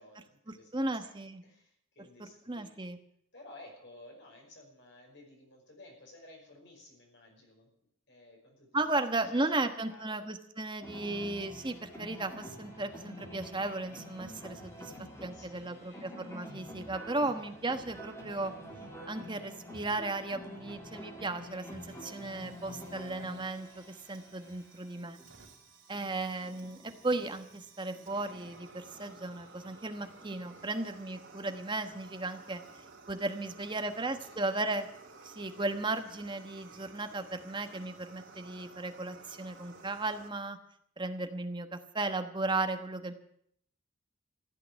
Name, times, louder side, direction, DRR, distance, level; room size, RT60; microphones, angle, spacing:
voice 1, 0.0-1.1 1.4-2.8 3.3-7.7 8.1-9.0 9.5-10.3 15.3-16.1 25.9-26.6 33.4-34.6, left 2 dB, 60° left, 1 dB, 5.4 m, -56 dB
voice 2, 0.7-1.4 2.5-3.0 8.7-14.9 15.2-18.5 19.1-23.8 24.1-25.2 25.9-32.6 33.1-34.9 35.2-40.6 41.0-43.1, right 2 dB, 25° right, 7 dB, 1.2 m, -35 dB
sound 1, 10.8-30.7, equal, 15° left, 2.8 m, -48 dB
Fire, 21.7-40.3, right 3 dB, 65° right, 3.1 m, -55 dB
15.0 x 8.8 x 9.7 m, 0.70 s
head